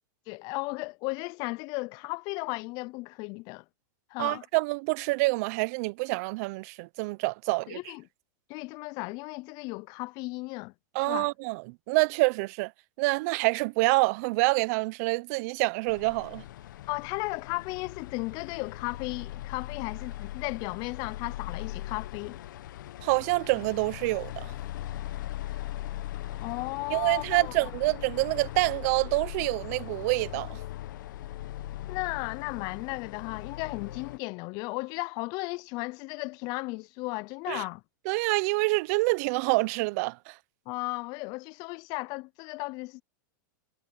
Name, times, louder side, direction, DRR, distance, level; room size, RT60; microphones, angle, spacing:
voice 1, 0.3-3.6 4.1-4.4 7.7-8.0 8.5-10.7 11.0-11.3 16.9-22.4 26.4-27.7 31.9-37.8 40.7-43.0, left 25 dB, 40° left, 0.3 m, -35 dB
voice 2, 4.2-7.8 10.9-12.7 13.0-16.4 23.0-24.5 26.9-30.6 37.5-37.6 38.1-40.4, right 26 dB, 55° right, 0.5 m, -27 dB
sound 1, 15.9-34.2, left 14 dB, 75° left, 0.9 m, -40 dB
supercardioid pair, 135°, 10 cm